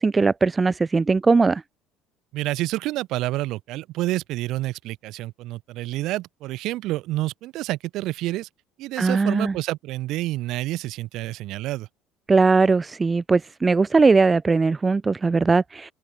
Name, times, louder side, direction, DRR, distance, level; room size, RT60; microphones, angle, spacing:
voice 1, 0.0-1.6 9.0-9.5 12.3-15.9, right 4 dB, 15° right, 0.3 m, -19 dB
voice 2, 2.3-8.5 8.8-11.9, right 17 dB, 60° right, 2.5 m, -28 dB
open air
cardioid pair, 135°, 0 cm